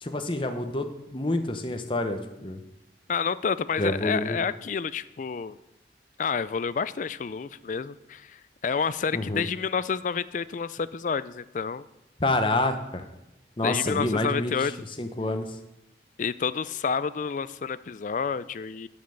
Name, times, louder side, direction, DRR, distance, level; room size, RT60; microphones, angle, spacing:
voice 1, 0.0-2.6 3.8-4.4 9.1-9.4 12.2-13.0 13.6-14.7 15.0-15.5, left 2 dB, 30° left, 6 dB, 0.9 m, -28 dB
voice 2, 3.1-5.6 6.2-11.9 13.6-14.7 16.2-18.9, left 6 dB, 45° left, 16 dB, 0.4 m, -29 dB
11.5 x 5.4 x 7.0 m, 0.95 s
head